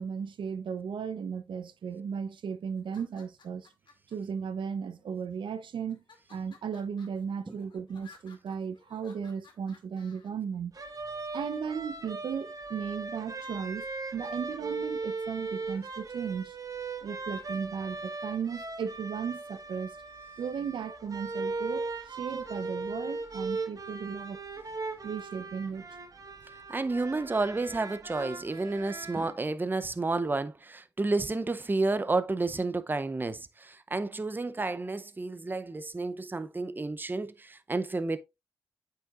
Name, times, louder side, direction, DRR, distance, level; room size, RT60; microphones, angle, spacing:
voice 1, 0.0-3.7 4.1-6.0 6.3-10.7 11.3-16.6 17.0-19.9 20.4-24.4 25.0-25.9, right 6 dB, 65° right, 0.7 m, -36 dB
sound 1, 2.8-4.1 4.9-5.4 5.9-10.3, left 4 dB, 60° left, 2.2 m, -58 dB
sound 2, 10.7-29.3, right 3 dB, 40° right, 1.3 m, -38 dB
voice 2, 26.7-38.2, right 3 dB, 20° right, 0.6 m, -31 dB
8.6 x 5.6 x 2.5 m
supercardioid pair, 50°, 9 cm